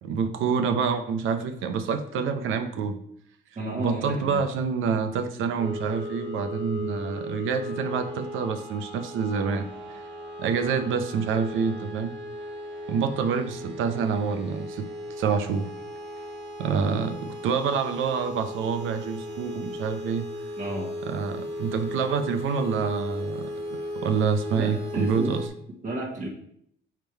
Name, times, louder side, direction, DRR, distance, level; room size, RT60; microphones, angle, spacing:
voice 1, 0.0-3.0 3.8-10.0 10.4-12.1 12.9-14.9 15.2-15.7 16.6-20.3 21.0-25.5, right 6 dB, 85° right, 8 dB, 0.7 m, -27 dB
voice 2, 3.6-4.4 20.6-20.9 24.6-25.3 25.8-26.3, right 1 dB, 40° right, -3 dB, 1.4 m, -32 dB
sound 1, 5.6-25.5, left 1 dB, 65° right, 1.6 m, -36 dB
7.4 x 3.5 x 4.5 m, 0.70 s
cardioid pair, 90°, 20 cm